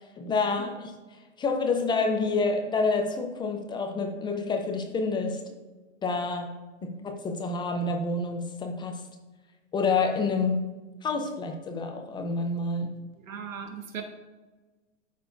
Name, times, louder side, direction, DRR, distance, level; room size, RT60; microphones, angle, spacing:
voice 1, 0.2-5.4 6.0-6.5 6.8-9.0 9.7-10.7 11.0-12.9, left 3 dB, 10° left, 5 dB, 0.5 m, -28 dB
voice 2, 13.3-14.0, right 7 dB, 85° right, 5 dB, 1.3 m, -38 dB
12.5 x 4.5 x 2.5 m, 1.2 s
hypercardioid pair, 120°, 39 cm